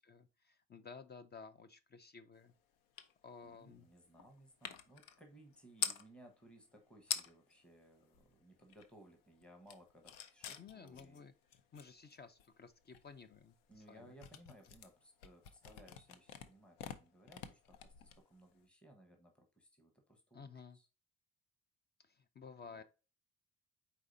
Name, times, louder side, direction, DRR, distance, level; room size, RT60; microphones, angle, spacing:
voice 1, 0.1-2.5 3.2-3.9 10.6-11.3 11.7-14.1 20.3-20.8 22.0-22.8, left 5 dB, 30° left, 0.5 m, -54 dB
sound 1, 3.0-3.1 3.4-6.1 6.7-6.8 7.0-7.6 7.9-9.1 9.4-18.6, left 9 dB, 90° left, 0.7 m, -46 dB
voice 2, 3.4-11.2 13.7-20.9 22.6-22.8, right 1 dB, 5° left, 1.2 m, -62 dB
4.7 x 4.1 x 2.6 m
cardioid pair, 90°, 33 cm